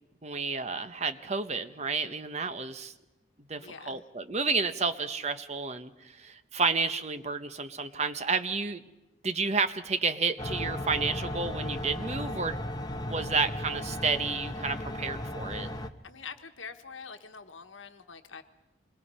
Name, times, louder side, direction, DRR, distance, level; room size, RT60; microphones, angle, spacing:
voice 1, 0.2-2.9 3.5-8.8 9.2-12.6 13.0-15.7, right 4 dB, 35° right, 10 dB, 0.9 m, -31 dB
voice 2, 3.6-4.0 16.0-18.4, left 5 dB, 85° left, 7 dB, 1.2 m, -45 dB
sound 1, 10.4-15.9, left 1 dB, 20° left, 0.9 m, -35 dB
26.5 x 21.5 x 5.5 m, 1.0 s
head